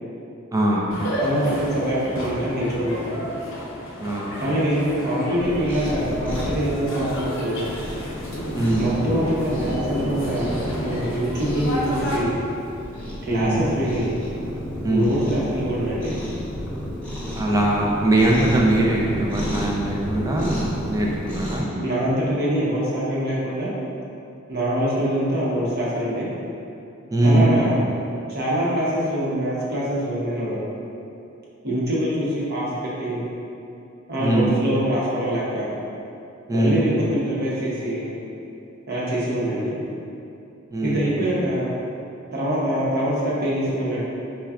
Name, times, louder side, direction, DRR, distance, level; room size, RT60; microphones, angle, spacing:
voice 1, 0.5-1.1 4.0-4.3 8.5-8.8 13.3-13.6 14.8-15.1 17.4-21.7 27.1-27.7 34.2-34.5 36.5-36.8 40.7-41.2, right 1 dB, 15° right, -3 dB, 0.4 m, -21 dB
sound 1, 0.9-12.2, left 1 dB, 65° left, 0.7 m, -32 dB
voice 2, 1.2-3.2 4.4-7.7 8.8-12.4 13.2-14.2 14.9-16.2 21.8-23.7 24.5-26.3 27.2-27.8 28.3-30.6 31.6-32.7 33.0-33.2 34.1-35.7 36.5-38.1 38.9-39.8 40.8-41.7 42.3-44.0, equal, 50° right, -7 dB, 0.8 m, -24 dB
Cat, 5.4-21.6, equal, 5° left, 0.8 m, -32 dB
5.4 x 2.3 x 2.3 m, 2.7 s
head